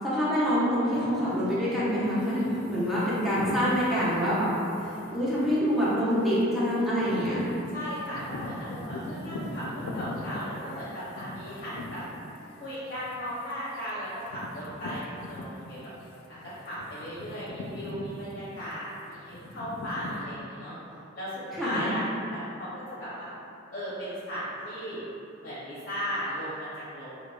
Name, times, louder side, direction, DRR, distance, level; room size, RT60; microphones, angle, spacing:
voice 1, 0.0-4.5 5.1-7.5 21.5-22.0, equal, ahead, -10 dB, 0.7 m, -26 dB
sound 1, 0.9-16.0 16.4-20.2, left 2 dB, 90° left, 0.3 m, -41 dB
voice 2, 7.7-12.0 12.6-15.8 16.4-20.8 21.1-23.3 23.7-25.0 25.4-27.1, equal, 45° left, -11 dB, 0.6 m, -36 dB
4.5 x 2.1 x 2.2 m, 2.8 s
head